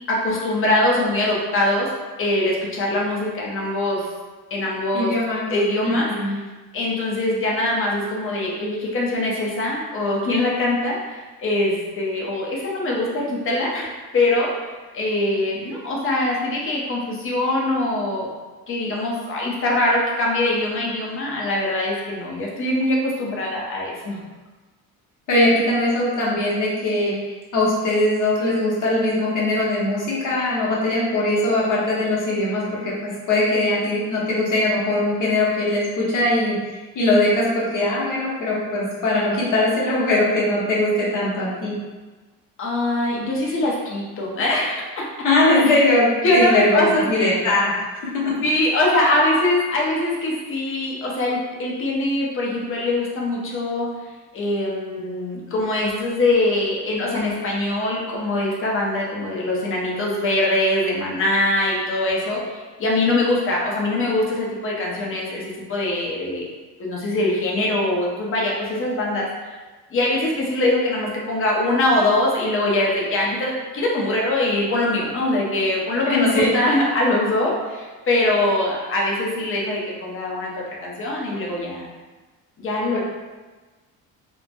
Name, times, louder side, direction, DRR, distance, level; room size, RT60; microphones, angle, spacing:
voice 1, 0.1-1.9 2.2-4.1 4.5-5.1 5.5-6.3 6.7-14.5 14.9-18.3 18.7-24.2 42.6-45.0 45.6-45.8 46.2-47.4 48.4-53.9 54.3-66.5 66.8-69.3 69.9-81.9 82.6-83.0, left 1 dB, 35° left, -3 dB, 0.7 m, -22 dB
voice 2, 4.9-5.5 5.8-6.3 25.3-27.1 27.5-36.6 36.9-41.7 45.2-48.3 76.0-76.6, left 1 dB, 55° left, -5 dB, 1.0 m, -20 dB
3.1 x 2.1 x 2.5 m, 1.3 s
cardioid pair, 105°, 38 cm